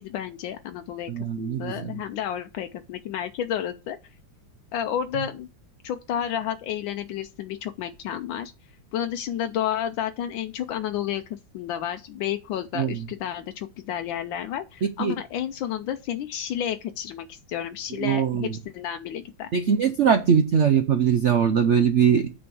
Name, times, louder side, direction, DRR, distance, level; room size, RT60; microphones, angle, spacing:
voice 1, 0.0-1.1 1.4-4.0 4.7-5.5 5.8-8.5 8.9-19.5, left 10 dB, 85° left, 1.4 m, -31 dB
voice 2, 1.1-1.9 12.8-13.0 15.0-15.1 18.0-18.5 19.5-22.3, right 7 dB, 70° right, 0.7 m, -21 dB
8.8 x 4.3 x 6.9 m
omnidirectional pair, 2.1 m